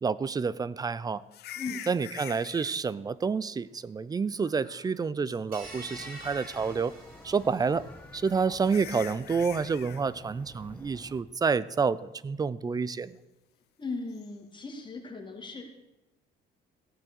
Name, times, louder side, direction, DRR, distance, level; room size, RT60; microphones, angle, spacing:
voice 1, 0.0-1.2 1.9-6.9 7.2-7.8 8.1-13.2, right 5 dB, 20° right, 19 dB, 0.5 m, -29 dB
sound 1, 1.3-2.8 4.4-5.0 5.3-5.4 6.0-6.5 7.9-8.0 8.6-10.0 14.1-14.3, left 12 dB, 75° left, 0.9 m, -44 dB
sound 2, 5.5-8.0, right 3 dB, 60° right, 3.9 m, -48 dB
sound 3, 5.6-11.2, left 2 dB, 10° left, 1.5 m, -49 dB
voice 2, 13.8-15.6, left 3 dB, 30° left, 2 dB, 2.6 m, -37 dB
16.0 x 8.7 x 6.3 m, 1.0 s
cardioid pair, 110°, 17 cm